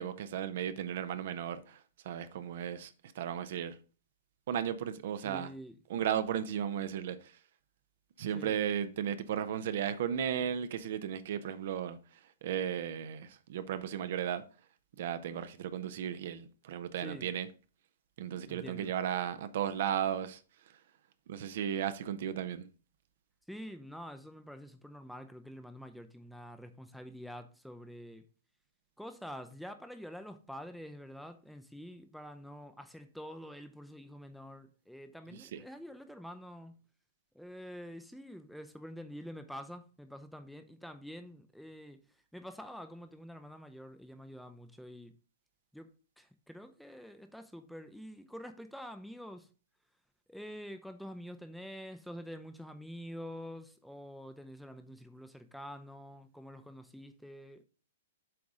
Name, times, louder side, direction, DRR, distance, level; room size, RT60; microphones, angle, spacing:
voice 1, 0.0-3.8 4.5-5.5 5.9-7.4 8.2-14.4 15.0-17.5 18.2-20.4 20.7-20.8 21.3-22.7 35.3-35.6, right 9 dB, 55° right, 0.7 m, -35 dB
voice 2, 5.2-5.8 8.3-8.6 17.0-17.3 18.5-18.9 23.5-28.3 29.0-36.8 37.3-45.1 45.7-45.9 46.2-49.5 50.3-57.6, equal, ahead, 0.6 m, -47 dB
7.9 x 4.8 x 3.7 m
figure-of-eight pair, 110°, 0 cm